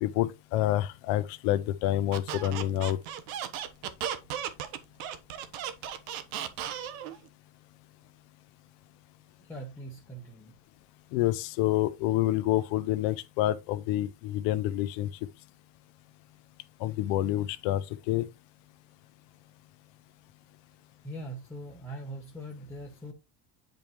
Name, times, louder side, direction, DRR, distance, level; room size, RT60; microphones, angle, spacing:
voice 1, 0.0-3.0 11.1-15.1 16.8-18.3, left 14 dB, 65° left, 0.8 m, -28 dB
Squeak, 2.1-7.2, right 9 dB, 80° right, 1.2 m, -35 dB
voice 2, 9.4-10.5 21.0-23.1, right 1 dB, 5° left, 1.1 m, -41 dB
8.8 x 5.3 x 3.1 m
cardioid pair, 170°, 42 cm